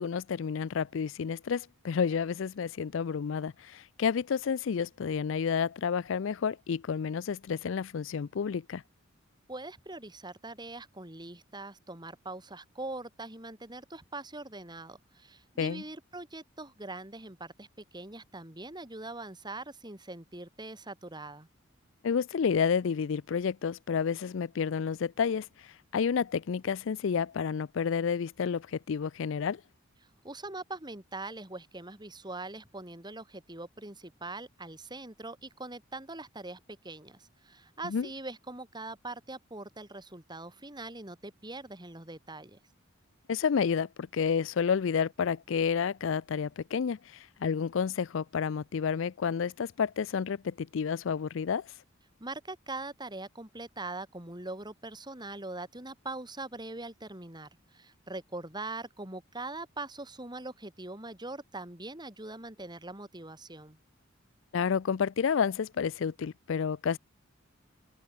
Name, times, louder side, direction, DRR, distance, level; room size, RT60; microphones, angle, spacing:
voice 1, 0.0-8.8 15.6-15.8 22.0-25.5 25.9-29.6 37.8-38.1 43.3-47.0 47.4-51.7 64.5-67.0, left 6 dB, 65° left, 0.4 m, -30 dB
voice 2, 9.5-17.7 17.9-21.5 30.2-42.6 52.2-63.8, right 2 dB, 20° right, 5.0 m, -42 dB
open air
head